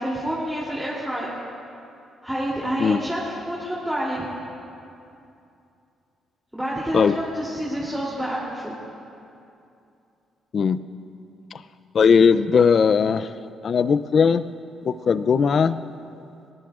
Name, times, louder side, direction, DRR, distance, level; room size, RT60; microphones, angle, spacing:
voice 1, 0.0-1.3 2.2-4.2 6.5-8.7, equal, 5° right, -7 dB, 3.0 m, -28 dB
voice 2, 11.9-13.3 13.6-14.4 14.8-15.8, left 6 dB, 50° left, 13 dB, 0.5 m, -18 dB
20.0 x 18.5 x 2.5 m, 2.6 s
cardioid pair, 90°, 0 cm